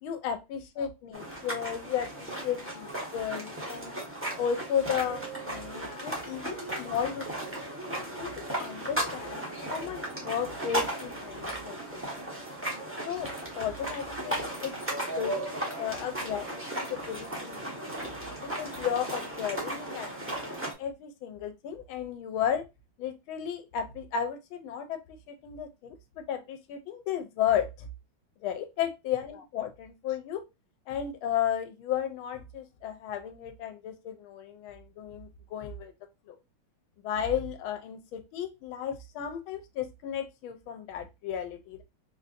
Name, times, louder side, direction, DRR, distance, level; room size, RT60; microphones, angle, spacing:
voice 1, 0.0-3.9 4.4-7.6 8.2-12.3 13.1-14.8 15.2-15.4 15.8-16.5 16.7-17.7 18.6-22.6 23.0-27.9 28.4-30.4 30.9-35.9 36.3-36.4 37.0-41.8, left 9 dB, 80° left, 8 dB, 1.5 m, -34 dB
sound 1, 1.1-20.7, right 1 dB, 10° right, 0.6 m, -36 dB
4.3 x 2.6 x 2.5 m, 0.24 s
omnidirectional pair, 2.3 m